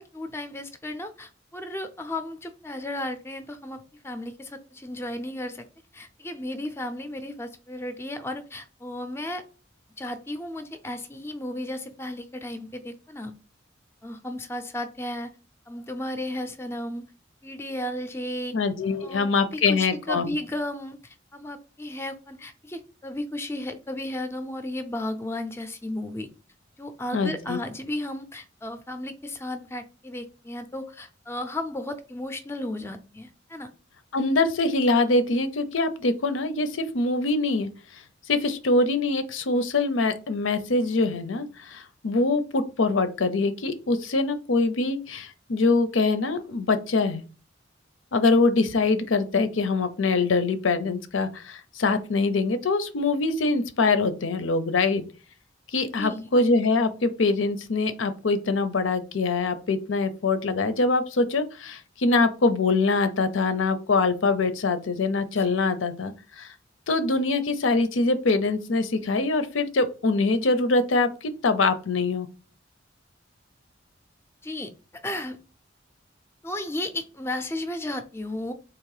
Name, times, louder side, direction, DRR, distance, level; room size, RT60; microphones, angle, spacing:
voice 1, 0.0-5.7 5.9-9.4 10.0-13.3 14.0-15.3 15.7-17.1 17.4-18.6 19.0-26.3 26.8-33.7 56.0-56.3 65.4-65.5 74.4-75.4 76.4-78.5, left 1 dB, 15° left, 8 dB, 0.5 m, -34 dB
voice 2, 18.5-20.3 27.1-27.6 34.1-37.7 38.3-47.2 48.1-55.0 55.7-66.5 66.9-72.3, left 3 dB, 85° left, 10 dB, 0.6 m, -24 dB
3.6 x 3.0 x 4.8 m, 0.35 s
head